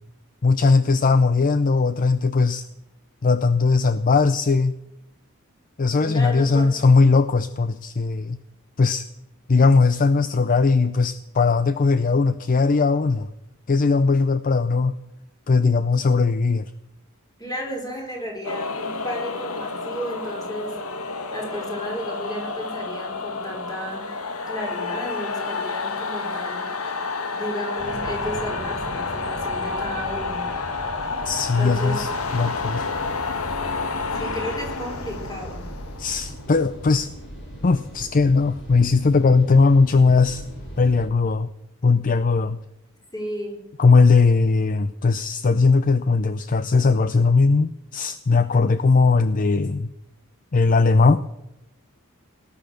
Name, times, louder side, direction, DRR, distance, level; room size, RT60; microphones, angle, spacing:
voice 1, 0.4-2.6 3.2-4.7 5.8-8.4 8.8-9.1 9.5-13.3 13.7-14.9 15.5-16.7 31.3-32.9 36.0-37.1 37.6-40.4 40.8-41.5 41.8-42.6 43.8-49.9 50.5-51.2, left 4 dB, 40° left, 13 dB, 0.5 m, -19 dB
voice 2, 6.0-6.8 17.4-20.8 21.3-24.1 24.5-26.8 27.3-30.5 31.6-32.1 34.1-35.7 43.1-43.6, equal, 20° left, 0 dB, 4.2 m, -33 dB
sound 1, 18.4-37.0, left 4 dB, 85° left, 1.5 m, -30 dB
sound 2, 27.8-41.0, equal, 60° left, 6.8 m, -39 dB
19.0 x 10.5 x 6.4 m, 0.88 s
head